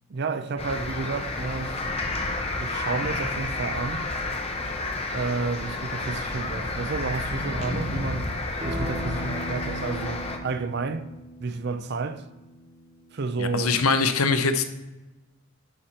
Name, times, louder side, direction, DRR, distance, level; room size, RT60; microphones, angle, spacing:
voice 1, 0.1-1.9 2.6-4.1 5.1-8.4 8.6-11.1 11.4-12.3 13.1-13.8, right 4 dB, 50° right, 0.5 m, -31 dB
sound 1, 0.6-10.4, left 2 dB, 25° left, 0.7 m, -30 dB
Acoustic guitar, 8.6-13.8, equal, 25° right, 1.3 m, -39 dB
voice 2, 13.4-14.6, left 4 dB, 75° left, 0.7 m, -22 dB
9.9 x 4.5 x 4.2 m
head